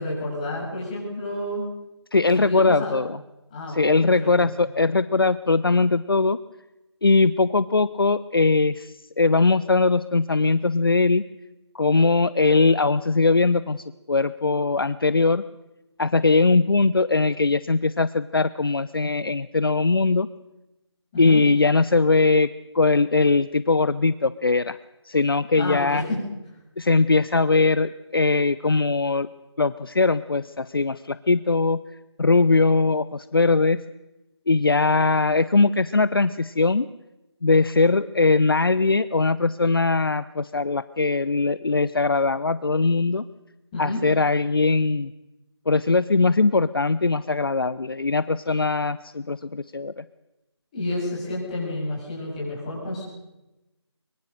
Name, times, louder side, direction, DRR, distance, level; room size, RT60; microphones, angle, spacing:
voice 1, 0.0-1.7 2.4-3.0 3.5-4.0 4.4-4.5 21.1-21.4 25.5-26.2 43.7-44.0 50.7-53.0, left 1 dB, 15° left, -4 dB, 7.0 m, -29 dB
voice 2, 2.1-3.2 3.7-6.4 7.0-11.2 11.7-15.4 16.0-20.3 21.2-22.5 22.7-24.8 25.0-26.0 26.8-29.3 29.6-31.8 32.2-33.8 34.5-36.9 37.4-43.2 43.8-45.1 45.7-50.0, left 3 dB, 55° left, 15 dB, 0.8 m, -20 dB
23.5 x 23.5 x 6.6 m, 0.98 s
figure-of-eight pair, 170°, 15 cm